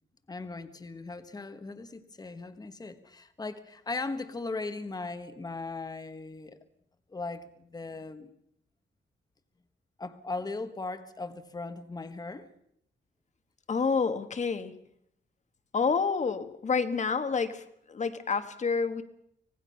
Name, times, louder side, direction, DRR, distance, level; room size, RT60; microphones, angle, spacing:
voice 1, 0.3-6.6 7.1-8.3 10.0-12.5, left 3 dB, 20° left, 9 dB, 1.2 m, -38 dB
voice 2, 13.7-14.8 15.7-19.0, left 5 dB, 35° left, 10 dB, 1.4 m, -28 dB
25.0 x 19.0 x 5.6 m, 0.72 s
wide cardioid pair, 160°, 20 cm